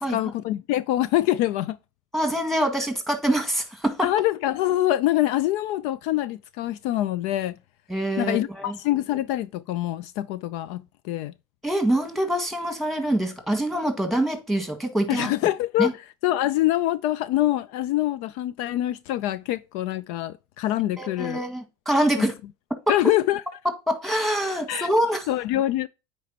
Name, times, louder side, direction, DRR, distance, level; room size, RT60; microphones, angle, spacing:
voice 1, 0.1-1.8 4.0-7.6 8.2-11.3 15.1-15.9 16.2-21.4 22.2-22.3 22.9-23.4 24.7-24.9 25.3-25.9, left 14 dB, 65° left, 0.4 m, -25 dB
voice 2, 2.1-4.1 7.9-8.8 11.6-15.3 15.8-15.9 21.0-22.4 22.9-23.0 23.6-25.3, right 1 dB, ahead, 1.9 m, -25 dB
9.3 x 4.3 x 2.9 m
supercardioid pair, 100°, 13 cm